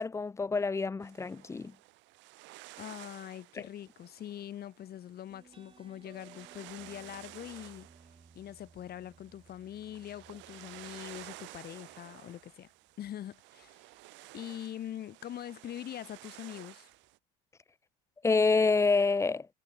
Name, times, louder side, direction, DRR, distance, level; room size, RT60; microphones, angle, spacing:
voice 1, 0.0-1.7 18.2-19.5, left 4 dB, 15° left, 0.4 m, -27 dB
sound 1, 1.0-17.2, right 22 dB, 70° right, 1.6 m, -53 dB
voice 2, 2.8-7.9 8.3-12.7 13.0-13.9 14.3-16.9, left 11 dB, 50° left, 3.0 m, -43 dB
sound 2, 5.3-12.5, right 4 dB, 25° right, 7.5 m, -60 dB
hypercardioid pair, 70°, 20 cm